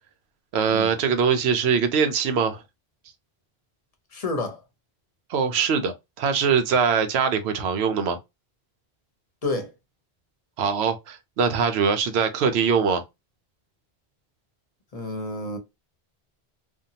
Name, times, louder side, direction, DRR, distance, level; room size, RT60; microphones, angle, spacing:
voice 1, 0.5-2.6 5.3-8.2 10.6-13.0, right 6 dB, 85° right, 0.9 m, -22 dB
voice 2, 4.1-4.6 9.4-9.7 14.9-15.6, left 2 dB, 40° left, 0.7 m, -29 dB
2.6 x 2.2 x 2.7 m
omnidirectional pair, 1.1 m